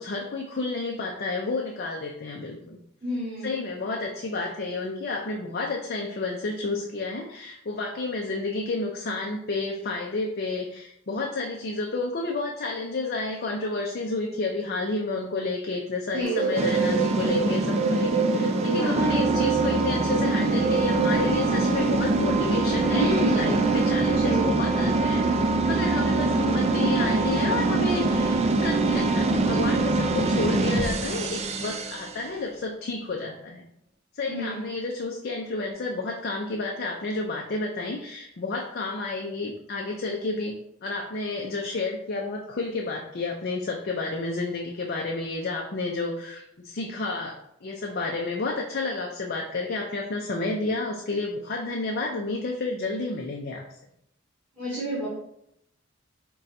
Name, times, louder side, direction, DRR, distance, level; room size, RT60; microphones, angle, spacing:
voice 1, 0.0-2.8 3.4-25.2 25.6-33.7 34.2-40.5 40.8-53.6, left 3 dB, 50° left, 0 dB, 0.5 m, -31 dB
voice 2, 3.0-3.6 16.1-16.6 18.7-19.1 22.9-23.5 24.1-24.5 34.3-34.7 54.6-55.1, right 1 dB, 10° left, -10 dB, 1.6 m, -30 dB
Bird, 16.2-24.5, right 4 dB, 50° right, 1.0 m, -30 dB
sound 1, 16.6-32.2, right 3 dB, 35° right, 0.4 m, -24 dB
5.0 x 2.3 x 4.1 m, 0.77 s
head